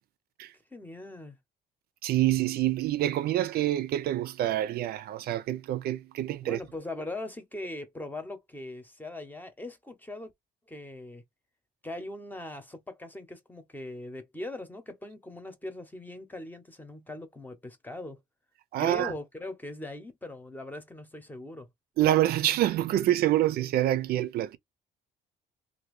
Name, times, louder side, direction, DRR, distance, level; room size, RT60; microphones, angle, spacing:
voice 1, 0.7-1.4 6.4-10.3 10.7-11.2 11.8-18.2 18.8-21.7, left 2 dB, 10° left, 0.9 m, -40 dB
voice 2, 2.0-6.6 18.7-19.1 22.0-24.6, right 13 dB, 65° right, 0.5 m, -26 dB
2.7 x 2.6 x 3.1 m
cardioid pair, 110°, 17 cm